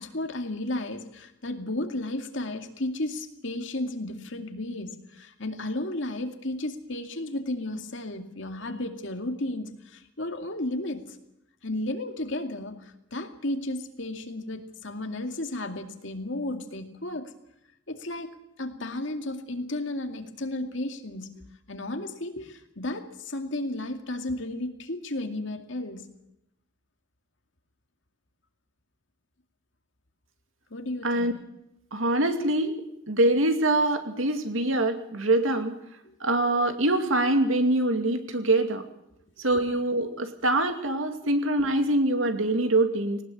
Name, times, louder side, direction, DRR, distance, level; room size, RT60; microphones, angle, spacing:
voice 1, 0.0-11.2 11.6-17.3 17.9-18.3 18.6-21.4 21.7-26.1 30.7-31.3 36.0-36.1 39.5-39.6, left 1 dB, 70° left, 6 dB, 2.4 m, -33 dB
voice 2, 31.9-32.7 33.1-35.7 36.2-38.8 39.4-43.2, right 1 dB, 90° right, 7 dB, 2.5 m, -24 dB
19.5 x 18.5 x 8.6 m, 0.82 s
head